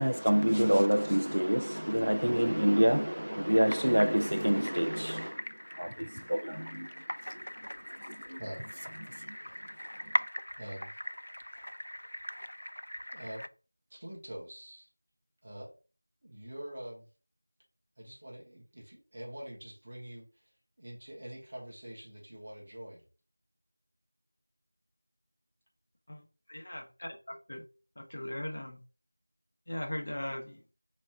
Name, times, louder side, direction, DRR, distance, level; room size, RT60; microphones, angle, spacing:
voice 1, 0.0-5.4 5.8-6.9 7.3-7.4 8.0-8.4 9.2-9.4, equal, 80° right, 0.4 m, -27 dB
sound 1, 3.5-13.5, equal, 75° left, 0.3 m, -40 dB
voice 2, 10.6-11.0 13.1-13.5 13.9-14.9 15.4-15.7 16.2-17.1 18.0-20.4 20.8-23.0, right 1 dB, 30° right, 1.3 m, -45 dB
voice 3, 26.1-27.6 28.0-28.8 29.7-30.6, left 1 dB, 35° left, 0.7 m, -39 dB
3.2 x 3.1 x 4.4 m
figure-of-eight pair, 175°, 0 cm